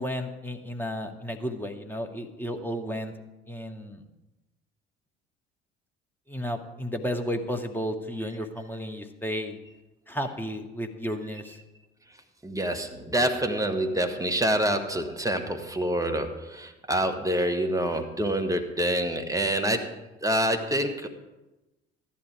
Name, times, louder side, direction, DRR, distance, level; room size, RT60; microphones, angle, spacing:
voice 1, 0.0-3.1 3.5-4.0 6.3-9.6 10.1-11.6, equal, 5° left, 4 dB, 1.9 m, -33 dB
voice 2, 12.4-21.1, right 1 dB, 10° right, 6 dB, 1.9 m, -27 dB
14.0 x 11.5 x 4.9 m, 1.0 s
figure-of-eight pair, 55°, 31 cm